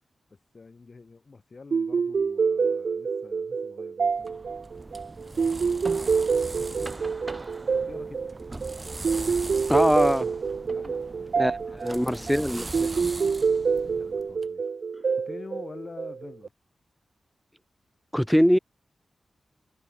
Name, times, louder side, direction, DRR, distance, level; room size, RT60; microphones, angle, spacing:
voice 1, 0.5-4.5 5.3-7.1 7.7-8.3 9.2-9.6 10.7-12.6 13.4-14.7 15.1-16.5, left 4 dB, 55° left, 5.5 m, -47 dB
sound 1, 1.7-16.5, right 5 dB, 70° right, 0.9 m, -27 dB
sound 2, 4.1-14.5, right 2 dB, 35° right, 1.4 m, -40 dB
voice 2, 9.7-10.3 11.4-12.9 18.1-18.6, equal, ahead, 1.4 m, -23 dB
cardioid pair, 45°, 0 cm